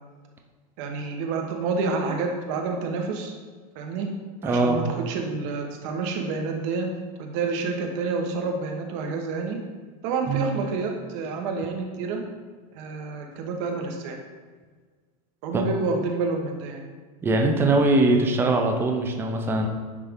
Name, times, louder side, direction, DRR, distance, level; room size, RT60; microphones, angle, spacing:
voice 1, 0.8-3.3 3.7-4.1 4.4-6.9 7.2-9.6 10.0-12.2 12.7-14.2 15.4-16.8, right 4 dB, 55° right, 3 dB, 1.1 m, -28 dB
voice 2, 4.4-4.8 10.3-10.5 15.5-15.7 17.2-19.7, right 2 dB, 10° right, 3 dB, 0.5 m, -21 dB
9.4 x 3.3 x 3.6 m, 1.4 s
supercardioid pair, 150°, 19 cm